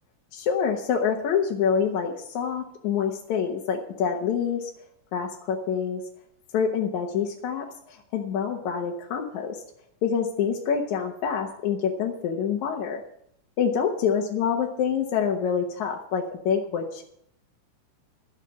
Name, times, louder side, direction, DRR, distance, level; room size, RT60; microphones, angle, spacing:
voice 1, 0.3-4.7 5.1-6.0 6.5-9.6 10.0-13.0 13.6-17.0, left 7 dB, 70° left, 1 dB, 2.4 m, -26 dB
12.5 x 7.6 x 8.4 m, 0.70 s
omnidirectional pair, 3.6 m